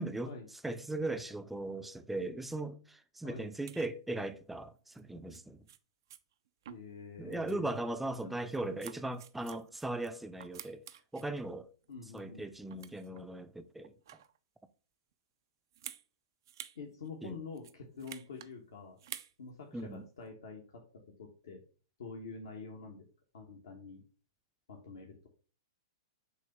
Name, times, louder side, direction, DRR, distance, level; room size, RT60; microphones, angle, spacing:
voice 1, 0.0-0.3 0.6-5.7 7.2-10.8 11.1-11.7 12.1-14.0 17.2-17.4 19.7-20.0, right 2 dB, 5° right, 0.5 m, -38 dB
sound 1, 3.7-3.9 4.9-5.0 5.3-5.4 5.7-5.8 6.1-6.2 6.6-7.0 7.3-7.6 8.0-10.1 10.4-11.3 11.8-12.4 12.7-13.2 13.8-14.4 15.7-16.0 16.4-16.8 17.0-17.1 17.5-18.5 19.0-19.3 19.8-19.9, right 10 dB, 65° right, 0.5 m, -49 dB
voice 2, 6.7-7.8 8.2-8.3 11.9-12.4 16.7-19.0 19.4-20.8 21.2-21.6 22.0-23.1 23.3-24.0 24.7-25.3, left 4 dB, 70° left, 1.2 m, -47 dB
6.4 x 2.8 x 5.4 m
hypercardioid pair, 115°, 2 cm